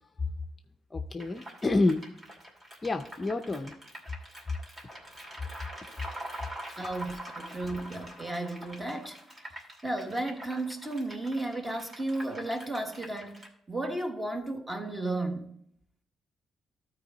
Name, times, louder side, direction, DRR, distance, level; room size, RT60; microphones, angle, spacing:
voice 1, 0.9-2.1 2.8-3.7, left 2 dB, 25° left, 0.5 m, -28 dB
sound 1, 1.2-13.5, equal, 35° right, 2.4 m, -45 dB
Wind instrument woodwind instrument, 4.6-8.4, left 4 dB, 75° right, 1.8 m, -64 dB
voice 2, 6.8-9.2 9.8-15.6, right 2 dB, 15° right, 1.3 m, -34 dB
13.0 x 4.6 x 4.0 m
cardioid pair, 90°, 0 cm